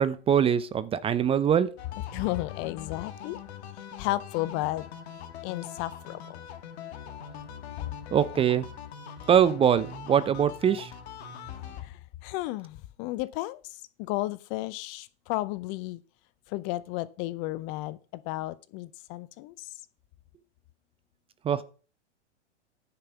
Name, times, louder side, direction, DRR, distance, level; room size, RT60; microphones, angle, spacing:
voice 1, 0.0-1.7 8.1-8.7 9.3-10.9 21.4-21.6, right 8 dB, 15° right, 0.6 m, -23 dB
sound 1, 1.8-11.8, left 7 dB, 65° left, 2.0 m, -43 dB
voice 2, 2.1-3.4 4.0-4.9 5.4-6.2 12.2-13.6 14.1-16.0 16.5-18.0 18.3-19.5, left 17 dB, 35° left, 0.6 m, -32 dB
9.9 x 5.5 x 6.9 m
hypercardioid pair, 110°, 35 cm